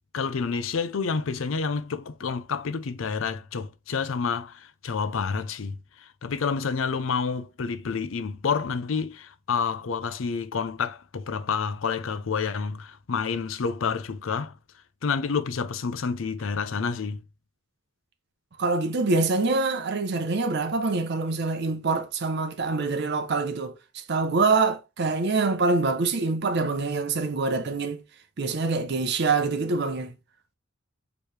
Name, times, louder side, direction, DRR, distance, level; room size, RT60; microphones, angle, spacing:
voice 1, 0.1-14.6 15.0-17.2, left 5 dB, 75° left, 0.5 m, -29 dB
voice 2, 18.6-28.0 28.4-30.1, right 3 dB, 55° right, 0.6 m, -25 dB
4.6 x 3.1 x 3.2 m
head